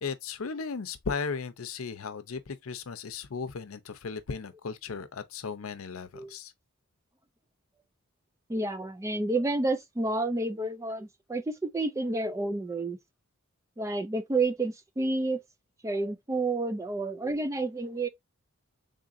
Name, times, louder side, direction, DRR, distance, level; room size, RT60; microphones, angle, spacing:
voice 1, 0.0-6.5, left 5 dB, 80° left, 0.6 m, -36 dB
voice 2, 8.5-13.0 13.8-15.4 15.8-18.1, right 2 dB, 15° right, 0.3 m, -30 dB
3.7 x 3.7 x 2.5 m
head